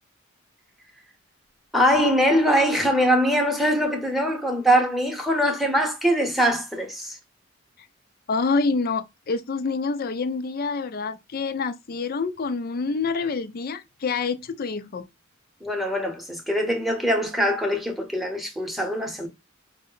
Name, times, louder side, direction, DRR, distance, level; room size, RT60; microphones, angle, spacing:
voice 1, 1.7-7.2 15.6-19.3, equal, ahead, 0.9 m, -22 dB
voice 2, 8.3-15.0, left 4 dB, 45° left, 0.4 m, -27 dB
5.2 x 2.1 x 3.8 m
head